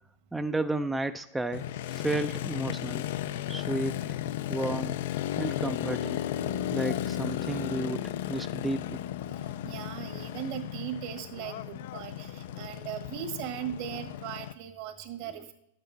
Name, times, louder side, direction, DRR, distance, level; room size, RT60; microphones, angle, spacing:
voice 1, 0.3-3.0 3.5-3.9 4.5-5.0 5.4-6.2 6.7-9.0 15.2-15.5, right 2 dB, 5° right, 7 dB, 0.4 m, -32 dB
Motorcycle, 1.5-14.5, left 12 dB, 65° left, 0.4 m, -35 dB
Bass guitar, 6.4-12.7, left 7 dB, 85° left, 3.1 m, -42 dB
voice 2, 9.6-15.5, right 10 dB, 55° right, 6 dB, 1.4 m, -38 dB
12.0 x 8.0 x 4.0 m, 0.80 s
hypercardioid pair, 115°, 0 cm